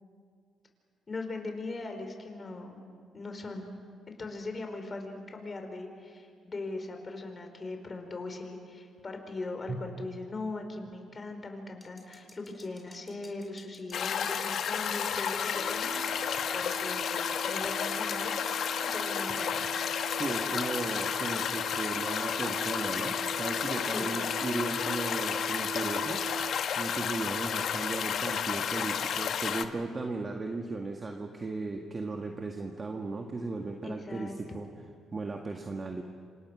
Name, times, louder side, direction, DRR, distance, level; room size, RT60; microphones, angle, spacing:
voice 1, 1.1-2.8 3.1-3.7 4.1-16.2 16.5-18.4 18.8-19.6 23.9-24.1 33.8-34.4, left 3 dB, 35° left, 5 dB, 4.3 m, -40 dB
sound 1, 11.8-16.9, left 2 dB, 15° left, 4.3 m, -55 dB
sound 2, 13.9-29.6, left 8 dB, 65° left, 1.2 m, -32 dB
sound 3, 15.5-26.5, right 5 dB, 85° right, 0.9 m, -42 dB
voice 2, 20.2-26.2 26.8-34.7 35.1-36.0, right 3 dB, 35° right, 3 dB, 1.8 m, -36 dB
27.0 x 26.5 x 6.2 m, 2.2 s
cardioid pair, 90°, 0 cm